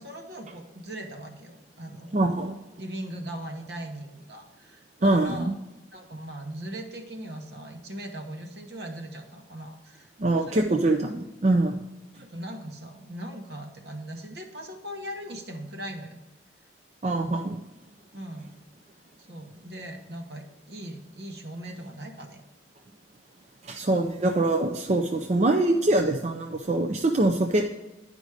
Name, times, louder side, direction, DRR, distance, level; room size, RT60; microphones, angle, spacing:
voice 1, 0.0-2.1 2.8-5.5 5.9-10.7 12.1-16.2 18.1-18.5 19.2-22.4, right 1 dB, 60° right, 4 dB, 1.2 m, -39 dB
voice 2, 2.1-2.6 5.0-5.5 10.2-11.8 17.0-17.6 23.6-27.6, right 2 dB, 40° right, 4 dB, 0.5 m, -24 dB
11.0 x 5.2 x 4.9 m, 1.0 s
head